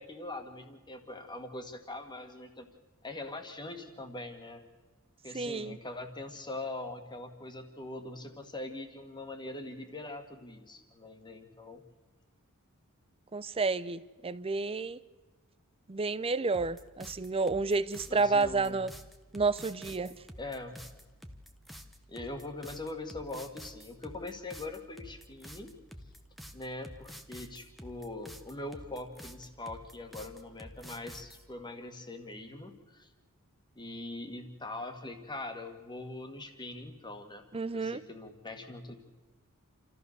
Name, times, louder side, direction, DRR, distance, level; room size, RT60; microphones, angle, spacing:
voice 1, 0.0-2.7 3.0-4.6 5.2-11.8 18.1-18.8 20.4-20.8 22.1-25.7 26.5-33.1 33.8-37.4 37.7-38.9, left 2 dB, 20° left, 6 dB, 2.0 m, -42 dB
voice 2, 5.3-5.8 13.3-15.0 15.9-18.9 19.3-20.1 37.5-38.0, right 4 dB, 25° right, 17 dB, 0.6 m, -30 dB
sound 1, 16.5-31.4, equal, ahead, 1.1 m, -49 dB
28.5 x 14.0 x 6.8 m, 1.2 s
head